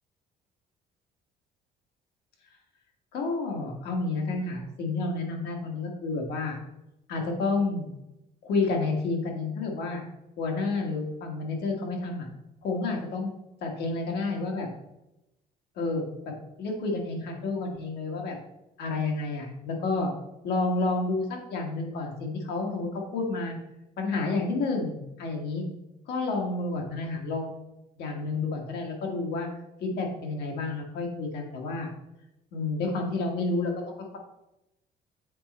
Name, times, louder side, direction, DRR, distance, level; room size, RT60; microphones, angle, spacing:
voice 1, 3.1-6.6 7.1-7.9 8.4-10.0 10.4-12.3 12.6-13.3 13.6-14.7 15.8-16.3 16.6-18.4 18.8-20.1 20.4-23.6 24.0-25.6 26.1-27.6 28.0-29.5 29.8-31.9 32.5-33.7, left 3 dB, 75° left, 1 dB, 1.5 m, -30 dB
7.6 x 4.1 x 4.2 m, 0.90 s
cardioid pair, 110°, 17 cm